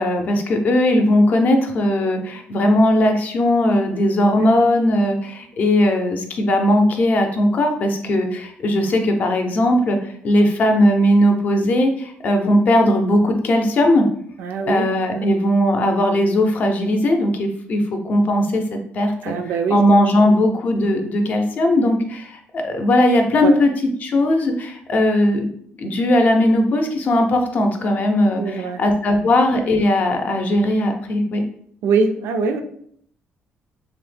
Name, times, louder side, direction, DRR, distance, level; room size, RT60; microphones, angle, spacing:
voice 1, 0.0-14.0 14.7-19.3 19.7-23.7 24.0-25.5 25.8-31.4, left 1 dB, 50° left, 4 dB, 0.5 m, -18 dB
voice 2, 14.4-15.3 19.2-19.8 23.4-23.6 28.4-28.8 29.2-29.3 31.8-32.6, right 4 dB, 90° right, 6 dB, 0.4 m, -23 dB
3.1 x 2.1 x 3.2 m, 0.63 s
cardioid pair, 130°, 4 cm